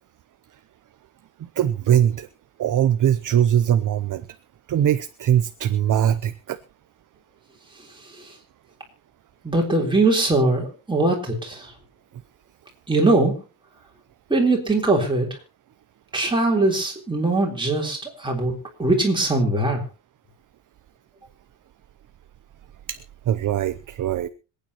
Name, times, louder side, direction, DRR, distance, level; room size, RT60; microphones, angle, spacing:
voice 1, 1.6-2.3 2.6-4.2 4.7-6.6 22.9-23.0 23.3-24.3, right 10 dB, 40° right, 12 dB, 0.6 m, -21 dB
voice 2, 9.4-11.7 12.9-13.4 14.3-15.3 16.1-18.5 18.8-19.8, right 2 dB, 10° right, 0 dB, 3.8 m, -21 dB
26.0 x 9.2 x 3.0 m, 0.32 s
cardioid pair, 160°, 48 cm